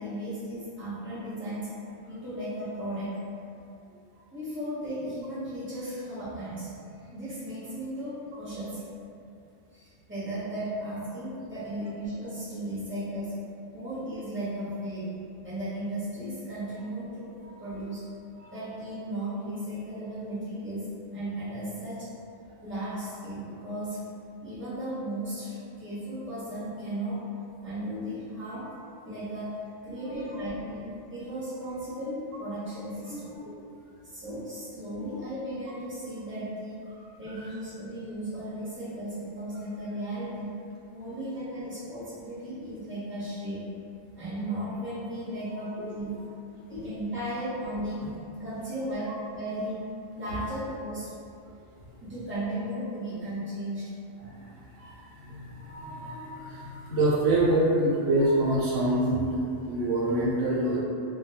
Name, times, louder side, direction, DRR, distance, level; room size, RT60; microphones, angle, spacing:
voice 1, 0.0-1.7 2.1-3.2 4.3-8.8 9.7-13.3 13.7-18.1 18.5-22.1 22.6-24.0 24.4-27.3 27.6-28.7 29.0-33.3 34.1-36.9 37.2-40.5 40.9-43.6 44.1-46.1 46.7-48.1 48.4-49.8 50.1-51.1 52.0-53.9, right 1 dB, 10° right, -12 dB, 0.7 m, -35 dB
voice 2, 33.1-33.5 35.0-35.1 37.3-37.5 45.7-46.2 54.2-60.8, right 1 dB, 80° right, -6 dB, 0.9 m, -27 dB
2.2 x 2.2 x 2.8 m, 2.5 s
omnidirectional pair, 1.3 m